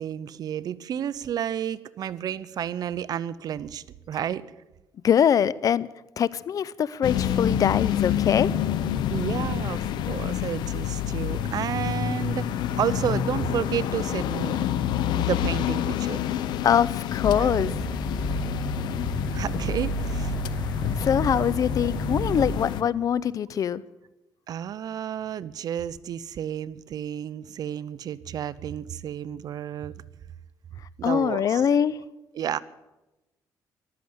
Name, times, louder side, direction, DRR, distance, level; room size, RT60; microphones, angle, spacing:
voice 1, 0.0-4.4 9.1-12.5 12.8-14.7 15.1-16.2 17.4-17.5 19.3-20.4 20.8-21.0 24.5-29.9 31.0-31.6 32.3-32.6, right 9 dB, 65° right, 18 dB, 0.7 m, -31 dB
voice 2, 5.0-5.9 6.2-8.5 16.6-17.8 21.0-23.8 31.0-32.0, left 8 dB, 55° left, 20 dB, 0.5 m, -23 dB
sound 1, 7.0-22.8, left 10 dB, 90° left, 0.7 m, -28 dB
sound 2, 17.2-22.5, equal, 30° left, 2.1 m, -30 dB
14.5 x 12.5 x 7.9 m, 1.0 s
cardioid pair, 110°, 7 cm